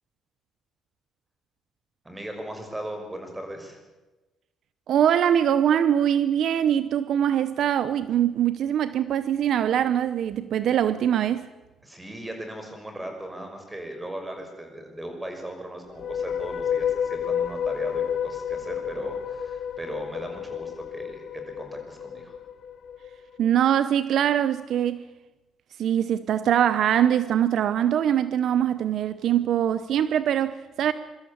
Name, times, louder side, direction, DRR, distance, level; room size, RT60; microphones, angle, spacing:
voice 1, 2.0-3.8 11.8-22.4, right 1 dB, 15° right, 6.1 m, -38 dB
voice 2, 4.9-11.5 23.4-25.1 25.8-30.9, right 10 dB, 70° right, 0.8 m, -23 dB
sound 1, 15.9-23.2, left 8 dB, 65° left, 1.2 m, -30 dB
24.5 x 13.0 x 8.6 m
cardioid pair, 90°, 0 cm